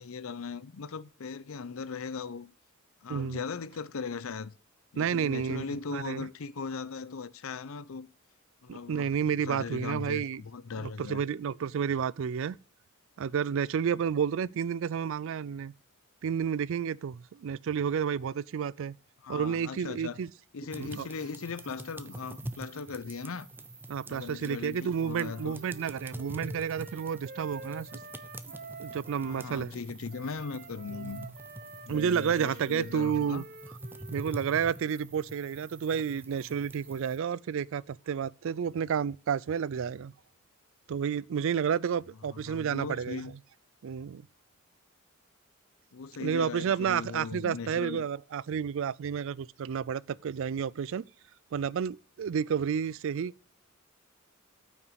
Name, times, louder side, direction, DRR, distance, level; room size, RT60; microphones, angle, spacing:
voice 1, 0.0-2.5 3.0-4.5 4.9-8.1 8.6-9.1 9.4-11.2 19.2-20.2 20.5-23.5 24.1-25.6 29.2-31.3 31.9-33.4 42.5-43.3 45.9-48.0, left 5 dB, 80° left, 0.6 m, -38 dB
voice 2, 3.1-3.4 5.0-5.7 5.9-6.3 8.7-10.4 10.8-12.6 13.2-15.7 16.2-19.0 19.3-20.3 20.8-21.1 23.9-28.0 28.5-28.6 28.8-29.7 30.9-31.3 31.9-33.4 34.1-40.1 40.9-43.2 43.8-44.3 46.2-51.1 51.5-53.3, right 7 dB, 65° right, 0.4 m, -31 dB
sound 1, 20.7-37.2, right 1 dB, 10° right, 0.6 m, -46 dB
Wind instrument woodwind instrument, 24.9-29.5 30.1-35.0, right 3 dB, 45° right, 0.9 m, -48 dB
9.0 x 6.0 x 6.3 m
head